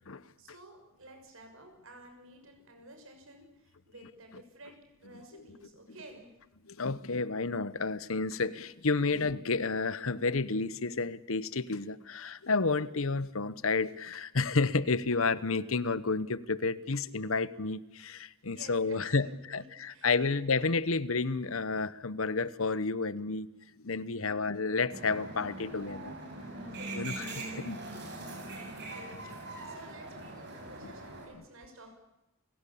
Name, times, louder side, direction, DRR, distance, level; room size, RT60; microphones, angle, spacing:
voice 1, 0.4-6.3 18.4-20.4 24.2-24.3 26.6-27.5 28.0-28.2 28.9-29.3 29.6-31.9, right 1 dB, 70° right, 5 dB, 6.5 m, -53 dB
voice 2, 6.7-23.5 23.8-26.2 26.9-27.3 27.6-27.8 30.8-30.9, left 4 dB, 75° left, 18 dB, 1.0 m, -31 dB
sound 1, 24.9-31.3, right 2 dB, 55° right, 7.1 m, -42 dB
29.5 x 16.5 x 8.6 m, 0.95 s
head